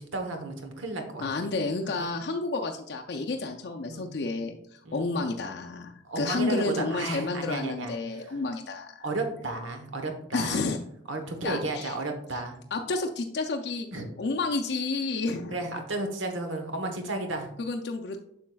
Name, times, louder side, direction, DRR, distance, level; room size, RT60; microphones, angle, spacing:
voice 1, 0.0-1.3 1.8-2.1 3.9-4.1 4.8-5.1 6.0-8.4 9.0-10.7 11.1-12.6 13.9-14.1 15.5-17.5, right 2 dB, 85° right, 5 dB, 1.0 m, -33 dB
voice 2, 1.2-9.0 10.3-10.8 11.4-11.9 12.7-13.9 14.2-15.6 17.6-18.2, left 3 dB, 60° left, 2 dB, 0.4 m, -30 dB
7.3 x 6.4 x 2.3 m, 0.74 s
head